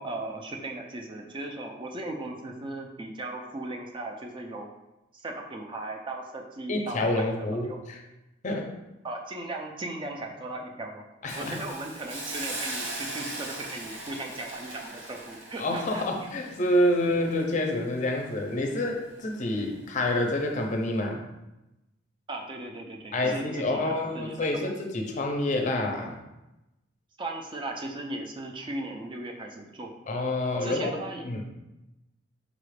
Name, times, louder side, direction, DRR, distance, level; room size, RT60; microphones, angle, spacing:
voice 1, 0.0-4.7 5.1-7.8 9.0-11.0 11.4-16.0 22.3-24.8 27.2-29.9 30.6-31.4, right 2 dB, 25° right, 2 dB, 0.4 m, -37 dB
voice 2, 6.7-8.0 8.4-8.7 11.2-11.6 15.6-21.2 23.1-26.2 30.1-30.9 31.2-31.4, left 1 dB, 40° left, 2 dB, 0.5 m, -28 dB
Hiss, 11.3-18.3 18.7-18.9, right 2 dB, 70° right, 0.9 m, -39 dB
5.0 x 2.4 x 3.2 m, 0.98 s
head